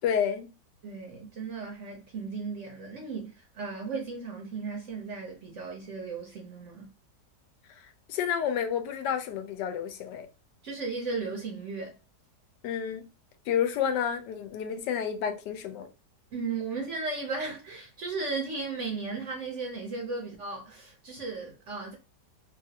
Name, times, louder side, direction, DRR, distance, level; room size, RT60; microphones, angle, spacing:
voice 1, 0.0-0.5 7.7-10.3 12.6-13.1 13.5-15.9, left 8 dB, 80° left, 1.2 m, -30 dB
voice 2, 0.8-6.9 10.6-12.0 16.3-21.9, right 4 dB, 60° right, 0.8 m, -35 dB
3.1 x 2.4 x 2.7 m
omnidirectional pair, 1.8 m